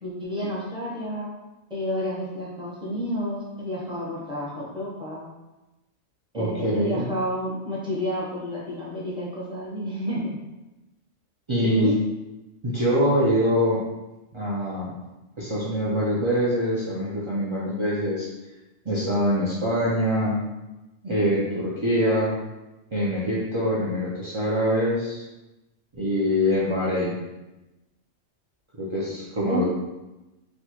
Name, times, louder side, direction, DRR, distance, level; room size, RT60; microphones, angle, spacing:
voice 1, 0.0-1.3 1.7-5.3 6.3-10.3 11.6-11.9 29.4-29.6, equal, 5° right, -6 dB, 0.6 m, -30 dB
voice 2, 6.3-7.1 11.5-11.9 12.6-13.8 14.3-14.9 15.4-18.3 18.9-20.4 21.0-22.4 22.9-25.2 25.9-27.2 28.8-29.6, equal, 50° right, -7 dB, 0.3 m, -24 dB
4.2 x 2.1 x 2.9 m, 1.0 s
omnidirectional pair, 1.3 m